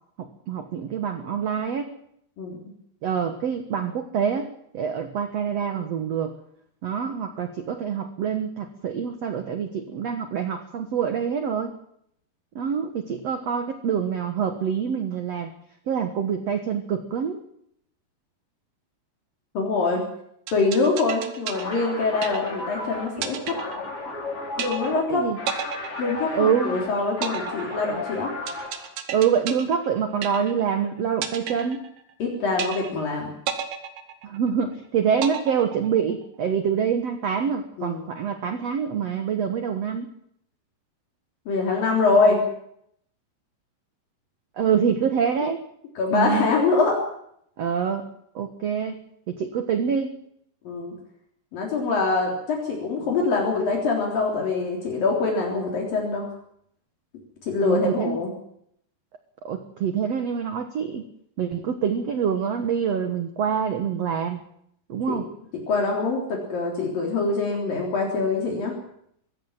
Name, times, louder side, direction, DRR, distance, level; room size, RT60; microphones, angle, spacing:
voice 1, 0.2-1.9 3.0-4.5 4.7-6.3 6.8-11.7 12.6-15.5 15.9-17.4 24.9-25.4 26.3-26.8 29.1-31.8 34.2-40.1 44.6-45.6 46.1-46.5 47.6-48.1 48.4-49.0 49.3-50.2 57.6-58.2 59.4-61.1 61.4-64.4 64.9-65.3, right 7 dB, 60° right, 7 dB, 1.8 m, -26 dB
voice 2, 19.6-20.0 20.5-23.6 24.6-25.3 26.0-28.3 32.2-33.3 37.8-38.0 41.5-42.4 45.4-45.5 46.0-47.0 50.7-50.9 51.5-56.3 57.5-58.3 65.1-65.2 65.7-68.7, left 3 dB, 60° left, 0 dB, 5.2 m, -24 dB
sound 1, 20.5-22.8 23.2-24.2 24.6-25.1 25.5-26.7 27.2-30.8 31.2-32.2 32.6-33.1 33.5-34.7 35.2-36.2, right 9 dB, 80° right, 3.8 m, -33 dB
sound 2, 21.5-28.9, left 3 dB, 35° left, 4.8 m, -34 dB
23.5 x 16.0 x 7.5 m, 0.71 s
omnidirectional pair, 4.7 m